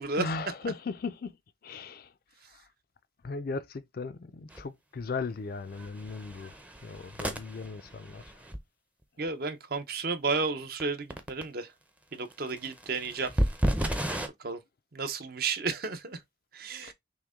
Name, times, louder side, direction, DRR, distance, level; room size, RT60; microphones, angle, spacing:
voice 1, 0.2-1.4 1.6-2.1 2.5-2.7 3.2-6.6 6.8-8.3 16.8-16.9, left 4 dB, 50° left, 0.4 m, -37 dB
sound 1, 4.5-4.6 5.0-5.2 5.7-8.6 10.8-10.9 11.1-11.4 12.3-14.3, equal, 5° right, 0.6 m, -32 dB
voice 2, 9.2-11.7 12.1-13.4 14.4-14.6 14.9-16.2 16.5-16.9, right 4 dB, 50° right, 0.7 m, -32 dB
5.8 x 2.2 x 3.6 m
head